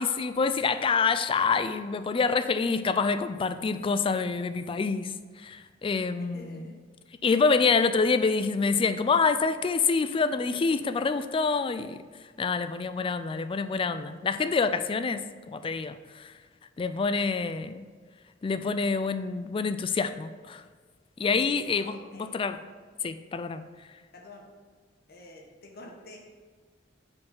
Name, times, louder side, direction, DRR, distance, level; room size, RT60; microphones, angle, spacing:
voice 1, 0.0-6.7 7.2-12.0 12.4-16.3 16.8-17.8 18.4-20.6 21.2-22.6 23.0-23.6, left 4 dB, 30° left, 11 dB, 0.3 m, -27 dB
voice 2, 6.2-6.8 21.4-22.4 24.1-24.4 25.1-26.2, left 1 dB, 55° left, 0 dB, 1.2 m, -48 dB
5.3 x 4.8 x 5.4 m, 1.5 s
head